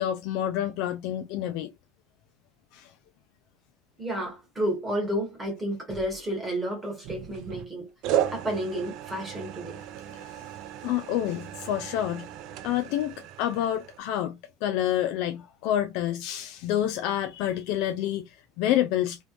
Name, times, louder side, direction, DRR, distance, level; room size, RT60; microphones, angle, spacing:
voice 1, 0.0-1.7 2.7-2.9 10.1-10.5 10.8-12.3 12.6-19.2, left 11 dB, 60° left, 0.4 m, -28 dB
voice 2, 4.0-7.9 8.3-9.8, right 1 dB, 10° right, 1.5 m, -31 dB
sound 1, 7.0-7.7 8.0-14.0, right 11 dB, 50° right, 0.5 m, -34 dB
3.4 x 3.0 x 2.5 m
cardioid pair, 165°, 0 cm